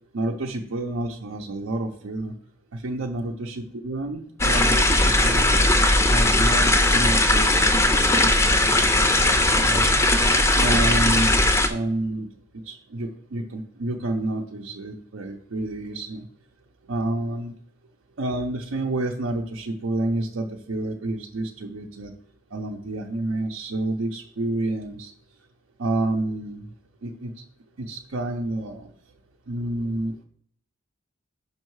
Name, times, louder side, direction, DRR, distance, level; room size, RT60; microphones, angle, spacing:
voice 1, 0.1-2.3 2.7-3.5 3.8-5.6 6.1-7.9 8.6-9.9 10.6-11.3 11.7-12.3 12.7-16.3 16.9-17.5 18.2-22.1 22.5-25.1 25.8-26.6 27.0-27.3 27.8-28.9 29.5-30.2, right 2 dB, 80° right, 0 dB, 0.6 m, -29 dB
sound 1, 4.4-11.7, left 1 dB, 15° left, 0.4 m, -19 dB
5.4 x 5.3 x 4.7 m, 0.66 s
head